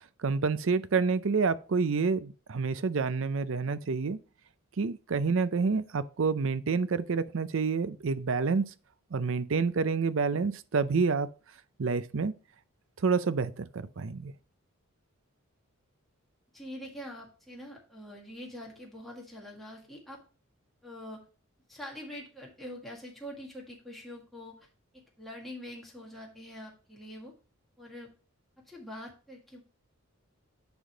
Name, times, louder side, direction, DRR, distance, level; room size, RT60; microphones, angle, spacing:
voice 1, 0.2-4.2 4.8-8.7 9.1-11.3 11.8-12.3 13.0-14.3, right 4 dB, 60° right, 0.5 m, -28 dB
voice 2, 16.5-20.2 20.8-21.2 21.7-24.7 24.9-27.3 27.8-28.1 28.7-29.6, left 1 dB, ahead, 1.7 m, -44 dB
10.0 x 3.6 x 4.5 m
head